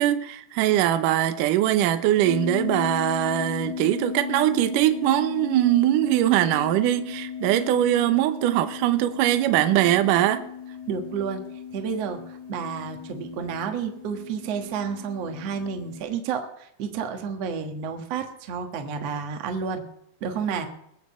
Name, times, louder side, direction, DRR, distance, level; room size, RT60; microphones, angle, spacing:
voice 1, 0.0-10.4, right 13 dB, 75° right, 2.0 m, -22 dB
sound 1, 2.2-16.0, left 8 dB, 40° right, 2.7 m, -36 dB
voice 2, 10.9-11.4 11.7-19.8 20.2-20.7, right 6 dB, 60° right, 1.8 m, -30 dB
21.5 x 7.7 x 6.1 m
omnidirectional pair, 4.8 m